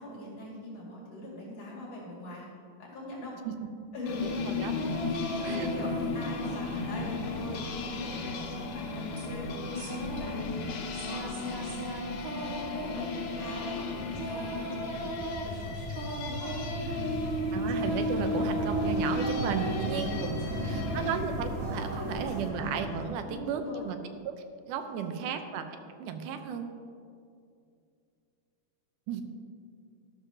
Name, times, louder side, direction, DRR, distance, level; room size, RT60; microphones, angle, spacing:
voice 1, 0.0-2.5 2.8-3.4 3.9-4.6 5.1-13.1 13.4-15.9 16.2-17.4 20.1-21.3 21.9-22.0 23.2-23.9 24.8-25.2, left 1 dB, 55° left, -4 dB, 3.2 m, -43 dB
sound 1, 4.1-21.2, left 3 dB, 75° left, 2.3 m, -35 dB
sound 2, 4.2-23.1, equal, 50° right, 1.0 m, -39 dB
voice 2, 4.2-4.7 5.5-5.7 17.5-24.0 24.3-24.4 24.7-25.6 26.0-26.7 29.1-29.2, right 7 dB, 90° right, 7 dB, 2.3 m, -34 dB
sound 3, 4.7-6.8 7.1-22.8, right 2 dB, 70° right, 2.8 m, -39 dB
13.0 x 12.5 x 2.8 m, 2.4 s
omnidirectional pair, 3.5 m